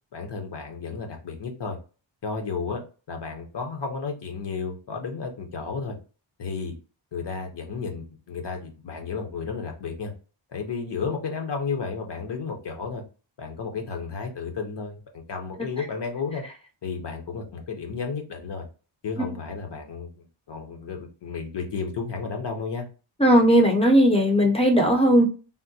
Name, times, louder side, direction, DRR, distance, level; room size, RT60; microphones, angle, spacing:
voice 1, 0.1-1.8 2.2-6.0 6.4-6.8 7.1-10.1 10.5-13.0 13.4-16.4 16.8-18.6 19.0-22.9, left 5 dB, 60° left, 0.9 m, -32 dB
voice 2, 23.2-25.2, equal, 15° left, 0.5 m, -17 dB
3.6 x 2.2 x 2.7 m
wide cardioid pair, 165°, 48 cm